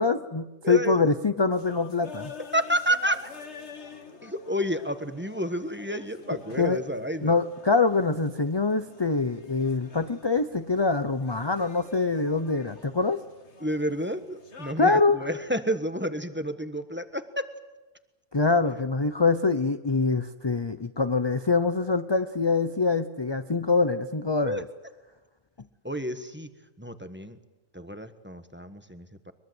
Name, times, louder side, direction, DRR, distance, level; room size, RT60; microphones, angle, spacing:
voice 1, 0.0-2.3 6.6-6.8 7.2-13.2 14.8-15.2 18.3-24.6, left 4 dB, 25° left, 10 dB, 0.7 m, -24 dB
voice 2, 0.6-1.1 2.5-3.3 4.2-7.4 13.6-17.5 24.4-24.6 25.8-26.5 26.8-27.4 27.7-29.3, equal, 10° right, 9 dB, 1.3 m, -30 dB
sound 1, 1.5-14.7, left 5 dB, 60° left, 2.1 m, -48 dB
23.0 x 22.5 x 8.0 m, 1.1 s
omnidirectional pair, 1.3 m